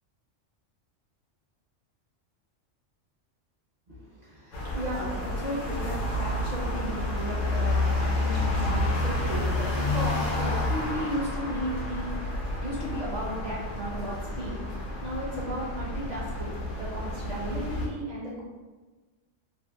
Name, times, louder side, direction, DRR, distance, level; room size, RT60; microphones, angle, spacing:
voice 1, 3.9-12.1 12.6-14.6 15.0-18.4, right 1 dB, 45° right, -6 dB, 0.6 m, -35 dB
sound 1, 4.5-17.9, left 2 dB, 75° left, 1.0 m, -30 dB
2.8 x 2.3 x 2.2 m, 1.3 s
omnidirectional pair, 1.3 m